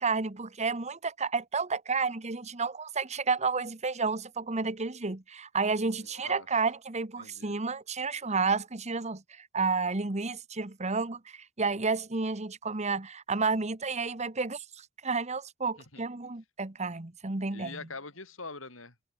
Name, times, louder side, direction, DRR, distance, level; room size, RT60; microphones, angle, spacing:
voice 1, 0.0-17.8, right 4 dB, 35° right, 1.3 m, -31 dB
voice 2, 6.0-6.5 7.2-7.6 15.9-16.0 17.5-18.9, left 3 dB, 80° left, 7.8 m, -44 dB
head